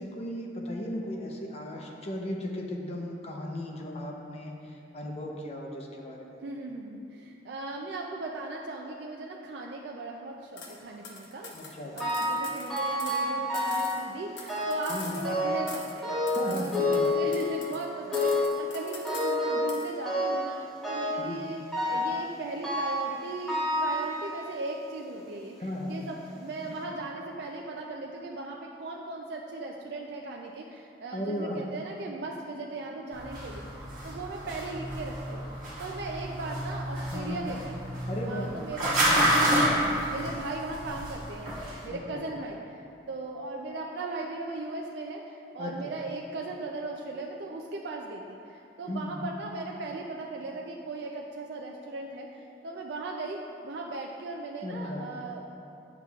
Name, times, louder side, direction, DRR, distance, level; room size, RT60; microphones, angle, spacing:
voice 1, 0.0-6.4 11.5-11.9 14.9-15.2 16.3-17.1 21.2-21.4 25.6-26.0 31.1-31.6 37.1-37.5 38.1-38.5 41.9-42.2 45.6-45.9 48.9-49.2 54.6-55.0, left 1 dB, 35° left, 0 dB, 0.6 m, -36 dB
voice 2, 6.4-37.8 38.2-39.0 39.3-41.6 41.8-55.4, right 2 dB, 70° right, -1 dB, 0.4 m, -38 dB
sound 1, 10.6-10.8 11.0-13.3 13.5-15.4 15.7-16.0 16.3-17.8 18.1-19.4 19.7-19.9, left 5 dB, 85° left, 0.8 m, -44 dB
sound 2, 12.0-12.4 12.7-14.0 14.5-14.9 15.2-15.7 16.0-17.7 18.1-18.6 19.0-19.7 20.1-20.5 20.8-21.3 21.7-22.2 22.6-23.1 23.5-24.5 25.2-25.3 26.1-26.2 26.6-26.7, left 1 dB, ahead, 1.1 m, -28 dB
sound 3, 33.1-41.8, right 1 dB, 50° right, 1.5 m, -29 dB
8.9 x 5.9 x 2.3 m, 2.7 s
head